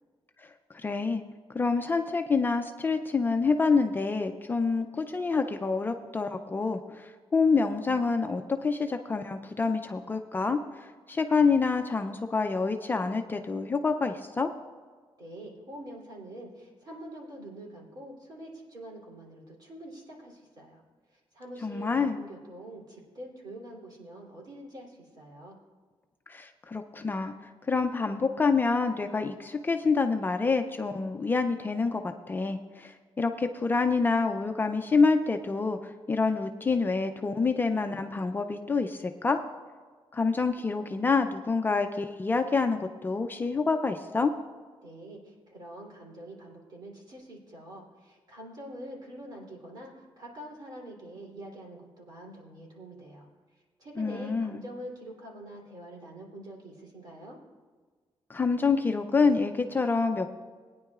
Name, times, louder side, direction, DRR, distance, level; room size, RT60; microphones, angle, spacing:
voice 1, 0.7-1.2 1.5-10.6 11.1-14.5 21.6-22.2 26.3-27.3 27.7-39.4 40.1-44.3 54.0-54.6 58.3-60.3, left 4 dB, 20° left, 6 dB, 0.4 m, -27 dB
voice 2, 15.2-20.8 21.1-25.6 44.8-53.3 53.8-57.4, right 1 dB, 45° right, -2 dB, 3.1 m, -45 dB
20.0 x 9.7 x 2.4 m, 1.5 s
wide cardioid pair, 150°, 9 cm